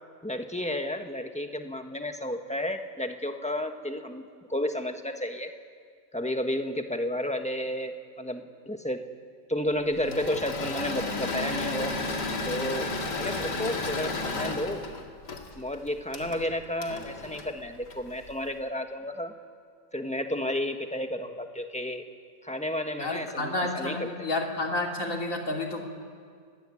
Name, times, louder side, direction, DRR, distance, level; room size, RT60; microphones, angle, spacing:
voice 1, 0.2-5.5 6.1-9.1 9.5-11.9 12.4-12.9 13.2-14.8 15.5-19.3 19.9-22.0 22.4-24.1, left 1 dB, 5° left, 5 dB, 1.2 m, -32 dB
Engine / Mechanisms, 9.9-18.3, left 3 dB, 70° left, 2.7 m, -33 dB
voice 2, 23.0-25.8, left 2 dB, 45° left, 1 dB, 3.1 m, -30 dB
29.5 x 16.5 x 9.8 m, 2.1 s
omnidirectional pair, 1.9 m